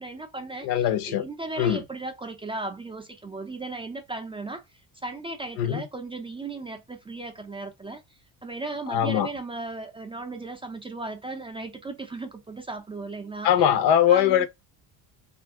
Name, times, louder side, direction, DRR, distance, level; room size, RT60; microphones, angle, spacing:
voice 1, 0.0-8.0 8.4-13.5 14.1-14.5, right 2 dB, 15° right, 0.3 m, -36 dB
voice 2, 0.6-1.3 1.6-1.8 5.6-5.8 8.9-9.3 13.4-14.5, left 10 dB, 85° left, 0.7 m, -21 dB
2.6 x 2.4 x 3.4 m
cardioid pair, 125°, 41 cm